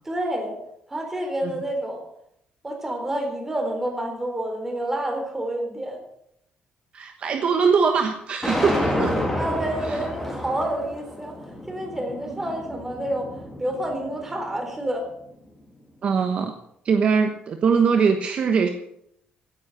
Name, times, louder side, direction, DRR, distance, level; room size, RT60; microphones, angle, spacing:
voice 1, 0.0-0.6 0.9-2.0 2.6-6.0 9.3-11.4 11.7-15.1, right 1 dB, 10° right, 3 dB, 3.9 m, -28 dB
voice 2, 6.9-9.1 12.3-12.4 16.0-16.5 16.8-18.7, right 5 dB, 40° right, 6 dB, 1.2 m, -21 dB
sound 1, 8.4-14.6, left 1 dB, 5° left, 3.2 m, -30 dB
16.5 x 9.8 x 6.7 m, 0.74 s
cardioid pair, 160°, 3 cm